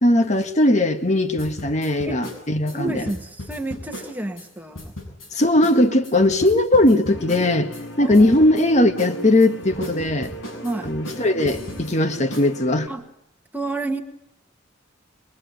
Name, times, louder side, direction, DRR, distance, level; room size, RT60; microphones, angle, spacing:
voice 1, 0.0-3.1 5.3-7.7 8.0-10.3 10.8-12.9, left 1 dB, 35° left, 8 dB, 1.7 m, -19 dB
sound 1, 1.4-4.5 4.7-5.3 5.6-5.8 6.0-7.8 8.1-8.6 9.0-11.9 12.3-12.5, left 1 dB, 85° left, 7.7 m, -36 dB
voice 2, 2.7-4.9 8.0-8.3 10.6-10.9 12.9-13.0 13.5-14.0, right 2 dB, 10° right, 4 dB, 1.8 m, -30 dB
sound 2, 7.1-12.9, right 1 dB, 60° left, 2.6 m, -37 dB
24.0 x 22.5 x 9.5 m, 0.76 s
head